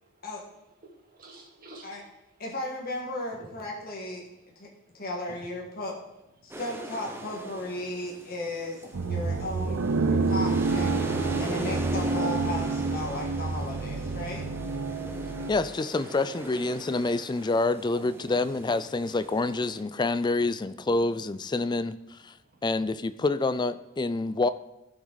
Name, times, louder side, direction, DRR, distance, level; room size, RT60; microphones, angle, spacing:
voice 1, 0.9-2.0 3.3-3.9 4.5-4.6 5.3-5.4 6.3-6.5 7.0-7.2 8.4-8.5 8.8-9.3 16.0-16.1 17.9-18.6 18.9-19.3, right 2 dB, 45° right, -2 dB, 2.6 m, -52 dB
voice 2, 2.4-4.7 4.9-6.0 6.4-9.8 10.1-11.0 11.4-14.4, left 1 dB, 45° left, -2 dB, 1.6 m, -35 dB
sound 1, 6.5-19.8, right 1 dB, 10° right, 0.8 m, -41 dB
sound 2, 8.9-15.5, right 3 dB, 90° right, 0.6 m, -28 dB
voice 3, 15.5-22.3 22.6-24.5, left 3 dB, 20° left, 14 dB, 0.3 m, -27 dB
15.0 x 6.3 x 4.0 m, 0.92 s
head